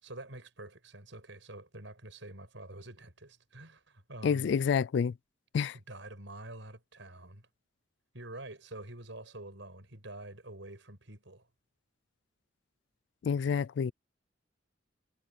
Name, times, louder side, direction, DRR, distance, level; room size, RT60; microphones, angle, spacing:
voice 1, 0.0-4.5 5.7-7.5 8.1-11.5, right 2 dB, 70° right, 6.6 m, -47 dB
voice 2, 4.2-5.1 5.5-5.8 13.2-13.9, left 6 dB, 60° left, 0.3 m, -28 dB
head